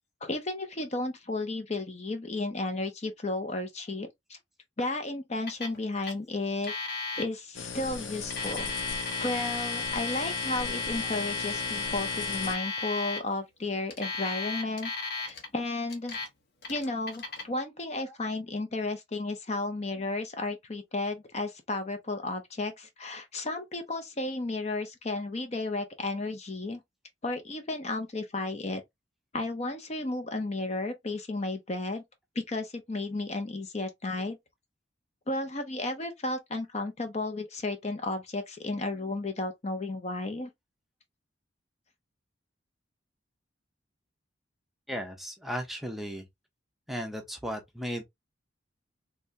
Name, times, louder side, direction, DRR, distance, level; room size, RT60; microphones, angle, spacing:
voice 1, 0.2-4.4 4.8-6.7 7.2-8.7 9.2-14.9 15.2-16.2 16.7-26.8 27.2-28.8 29.3-32.0 32.4-34.4 35.3-40.5, left 2 dB, 35° left, 0.6 m, -33 dB
Alarm, 5.5-5.8 6.0-6.1 6.6-7.2 8.2-13.2 13.9-15.5 15.9-16.3 16.6-17.4, left 3 dB, 55° left, 1.0 m, -34 dB
sound 1, 7.6-12.6, left 5 dB, 80° left, 0.7 m, -38 dB
voice 2, 44.9-46.2 46.9-48.0, equal, ahead, 0.6 m, -36 dB
3.3 x 3.3 x 2.6 m
head